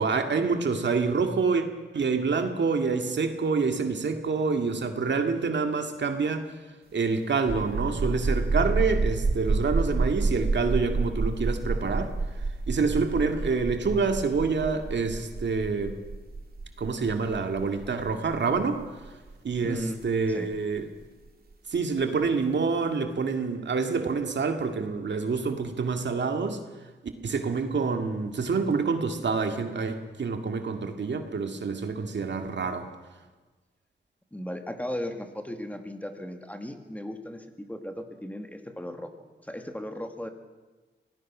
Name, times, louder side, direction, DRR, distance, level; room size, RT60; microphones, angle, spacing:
voice 1, 0.0-1.6 1.9-6.5 6.9-16.0 16.8-18.8 19.4-20.8 21.7-26.6 27.2-32.9, right 4 dB, 70° right, 6 dB, 2.1 m, -27 dB
sound 1, 7.4-20.8, right 3 dB, 50° right, 2.5 m, -29 dB
voice 2, 19.6-20.0 20.3-20.5 34.3-39.1 39.4-40.3, left 1 dB, 10° left, 6 dB, 2.0 m, -36 dB
26.5 x 18.5 x 6.2 m, 1.3 s
wide cardioid pair, 105°, 19 cm